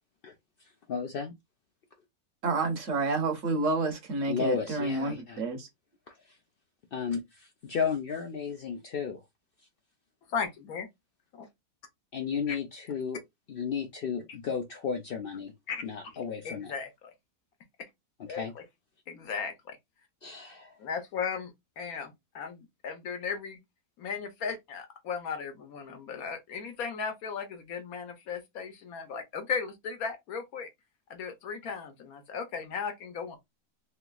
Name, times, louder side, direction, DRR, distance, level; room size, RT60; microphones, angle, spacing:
voice 1, 0.9-1.3 4.3-5.4 6.1-6.4 6.9-9.2 12.1-13.2 13.5-15.5 15.8-16.7 18.3-18.5 20.2-20.7, left 6 dB, 90° left, 0.5 m, -33 dB
voice 2, 2.4-5.7, right 3 dB, 60° right, 1.1 m, -29 dB
voice 3, 10.3-10.9 11.3-11.4 12.5-12.6 15.7-15.8 16.4-17.1 18.3-18.4 19.1-19.8 20.8-23.6 24.0-30.7 31.1-33.4, left 6 dB, 70° left, 1.2 m, -36 dB
3.3 x 2.9 x 2.3 m
omnidirectional pair, 1.6 m